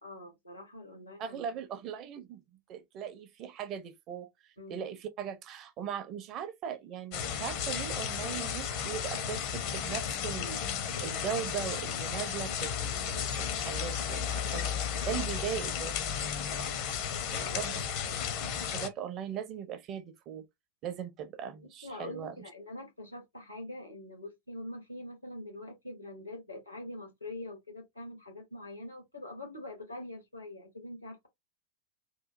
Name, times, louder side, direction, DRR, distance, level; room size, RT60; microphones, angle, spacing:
voice 1, 0.0-1.4 4.6-4.9 14.5-14.7 17.3-18.2 21.6-31.3, left 1 dB, 90° left, 1.1 m, -44 dB
voice 2, 1.2-4.3 4.7-10.6 11.0-16.7 17.3-17.8 18.7-20.5 20.8-22.4, right 8 dB, 35° right, 0.5 m, -39 dB
sound 1, 7.1-18.9, left 8 dB, 45° left, 0.6 m, -34 dB
2.9 x 2.2 x 2.5 m
figure-of-eight pair, 90°, 0 cm